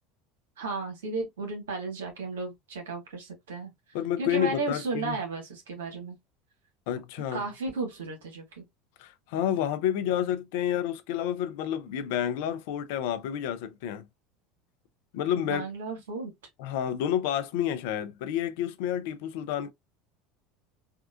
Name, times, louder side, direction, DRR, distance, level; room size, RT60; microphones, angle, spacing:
voice 1, 0.6-3.7 4.2-6.2 7.3-8.6 15.4-16.3, right 3 dB, 85° right, 1.4 m, -34 dB
voice 2, 3.9-5.2 6.9-7.4 9.0-14.0 15.1-15.7 16.6-19.7, left 10 dB, 70° left, 0.5 m, -29 dB
3.6 x 2.4 x 2.4 m
hypercardioid pair, 85°, 0 cm